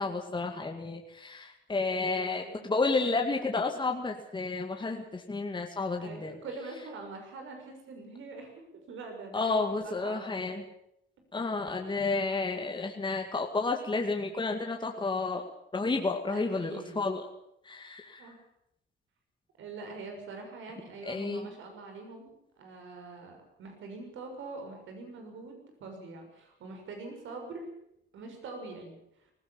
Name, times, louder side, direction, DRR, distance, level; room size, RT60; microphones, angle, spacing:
voice 1, 0.0-6.4 9.3-10.6 11.3-15.4 15.7-17.2 17.6-18.3 21.0-21.5, left 3 dB, 25° left, 2 dB, 2.2 m, -31 dB
voice 2, 1.7-2.7 6.0-8.5 8.9-10.5 11.4-11.5 16.3-17.1 18.2-18.4 19.6-27.7 28.1-29.3, right 3 dB, 75° right, 4 dB, 6.6 m, -44 dB
19.5 x 16.0 x 8.8 m, 0.80 s
cardioid pair, 90°, 20 cm